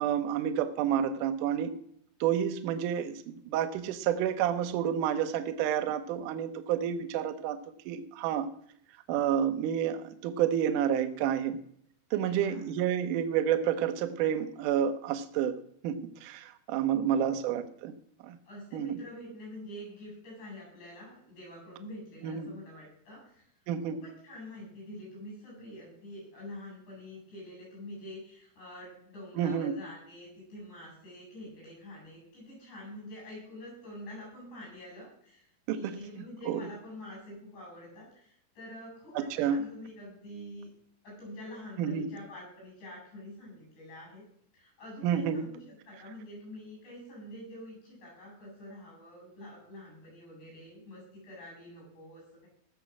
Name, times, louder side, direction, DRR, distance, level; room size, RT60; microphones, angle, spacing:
voice 1, 0.0-1.7 2.2-7.6 7.9-8.5 9.1-11.6 12.1-15.5 15.8-17.9 18.2-18.4 18.7-19.0 22.2-22.5 23.7-24.0 29.4-29.7 35.7-36.6 39.2-39.6 41.8-42.1 45.0-45.5, right 9 dB, 70° right, 9 dB, 2.0 m, -29 dB
voice 2, 12.1-12.6 17.0-17.4 18.4-23.5 23.8-40.7 41.0-44.2 44.5-52.5, left 1 dB, 90° left, -1 dB, 9.9 m, -46 dB
18.0 x 7.0 x 6.2 m, 0.65 s
omnidirectional pair, 4.9 m